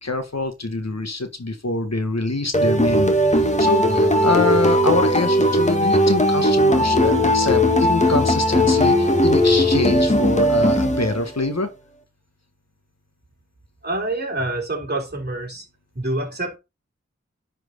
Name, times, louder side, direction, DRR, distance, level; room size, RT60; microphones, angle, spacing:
voice 1, 0.0-11.7, left 2 dB, 65° left, 1.5 m, -25 dB
sound 1, 2.5-11.5, equal, 25° left, 1.5 m, -18 dB
voice 2, 13.8-15.7 16.0-16.6, right 2 dB, 35° right, 3.4 m, -26 dB
10.0 x 4.5 x 4.0 m
wide cardioid pair, 40°, 29 cm